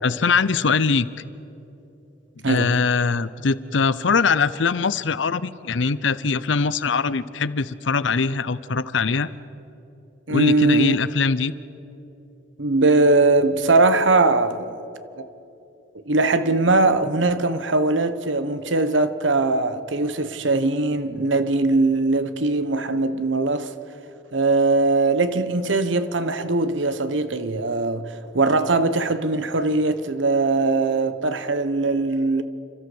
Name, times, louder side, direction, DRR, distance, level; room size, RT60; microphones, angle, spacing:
voice 1, 0.0-1.1 2.5-9.3 10.3-11.5, left 5 dB, 80° left, 0.7 m, -22 dB
voice 2, 2.4-2.8 10.3-11.0 12.6-14.7 16.1-23.7 24.3-32.4, right 3 dB, 85° right, 1.1 m, -20 dB
30.0 x 13.5 x 8.0 m
head